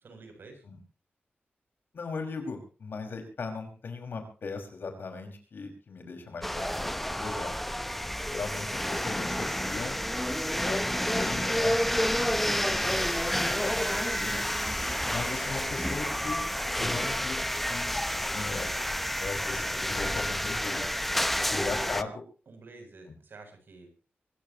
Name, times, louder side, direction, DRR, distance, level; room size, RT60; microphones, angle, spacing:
voice 1, 0.0-0.6 6.6-6.8 14.8-15.0 21.3-22.1 22.5-23.9, right 3 dB, 65° right, 5 dB, 7.8 m, -48 dB
voice 2, 1.9-7.7 8.3-10.0 10.6-10.8 11.1-13.1 13.5-14.4 15.1-16.5 16.8-18.0 18.3-18.7 19.2-20.9 21.5-22.2, left 4 dB, 65° left, 5 dB, 5.5 m, -38 dB
sound 1, 6.4-22.0, equal, 5° left, 0.8 m, -29 dB
24.5 x 16.0 x 3.0 m, 0.36 s
wide cardioid pair, 160°, 4 cm